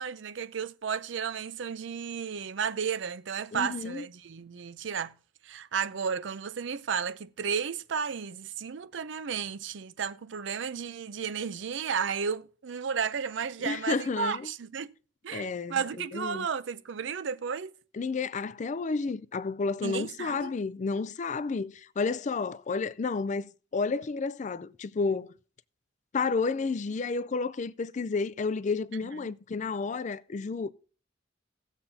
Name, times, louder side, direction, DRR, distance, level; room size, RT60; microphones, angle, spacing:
voice 1, 0.0-5.1 5.4-14.9 15.2-17.7 19.8-20.5 29.2-29.3, right 6 dB, 70° right, 0.5 m, -33 dB
voice 2, 3.5-4.0 13.6-14.5 15.3-16.5 17.9-25.3 26.1-30.7, left 4 dB, 40° left, 0.4 m, -31 dB
18.0 x 7.1 x 2.7 m
head